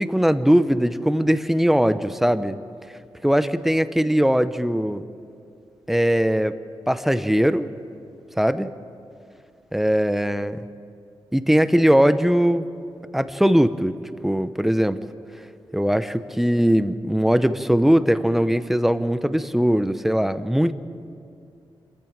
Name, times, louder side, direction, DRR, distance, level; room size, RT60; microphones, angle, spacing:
voice 1, 0.0-2.6 3.2-5.0 5.9-6.5 6.9-7.7 8.4-8.7 9.7-10.6 11.3-12.7 13.1-13.9 14.2-15.0 15.7-20.7, equal, 5° right, 12 dB, 0.7 m, -20 dB
27.0 x 14.0 x 7.4 m, 2.5 s
wide cardioid pair, 115°, 9 cm